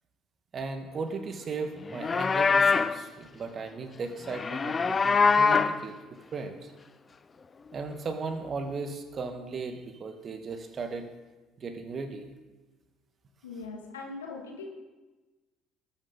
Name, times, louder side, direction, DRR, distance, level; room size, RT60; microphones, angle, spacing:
voice 1, 0.5-6.7 7.7-11.1 11.6-12.2, right 4 dB, 40° right, 7 dB, 1.6 m, -36 dB
Livestock farm animals working animals, 1.9-3.0 4.3-5.8, left 5 dB, 30° left, 0.6 m, -23 dB
voice 2, 13.4-14.7, left 4 dB, 80° left, 0 dB, 2.2 m, -40 dB
19.5 x 9.0 x 4.0 m, 1.2 s
figure-of-eight pair, 55°, 0 cm